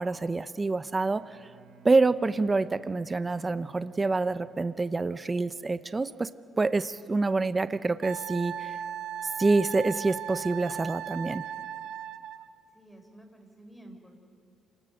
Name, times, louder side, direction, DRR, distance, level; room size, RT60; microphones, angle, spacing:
voice 1, 0.0-1.4 1.8-6.3 6.6-8.8 9.4-11.4, right 3 dB, 25° right, 13 dB, 0.6 m, -27 dB
Bowed string instrument, 0.9-5.2, right 8 dB, 65° right, 1.3 m, -57 dB
Wind instrument woodwind instrument, 8.0-12.5, right 10 dB, 90° right, 0.8 m, -37 dB
voice 2, 12.7-14.2, right 1 dB, 5° left, 3 dB, 4.0 m, -51 dB
28.0 x 18.0 x 6.6 m, 2.3 s
cardioid pair, 90°, 0 cm